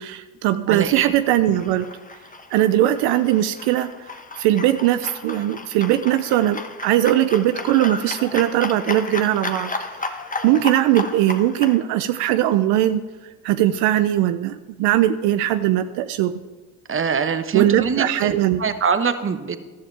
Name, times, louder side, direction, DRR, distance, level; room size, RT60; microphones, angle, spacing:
voice 1, 0.0-1.9 2.5-3.9 4.4-10.2 10.4-13.0 13.4-16.3 17.5-18.6, right 13 dB, 70° right, 10 dB, 0.7 m, -20 dB
voice 2, 0.7-1.1 16.9-19.6, right 6 dB, 30° right, 10 dB, 1.2 m, -23 dB
sound 1, 1.3-11.8, left 3 dB, 20° left, 1.3 m, -33 dB
14.0 x 12.0 x 3.4 m, 1.3 s
hypercardioid pair, 65°, 42 cm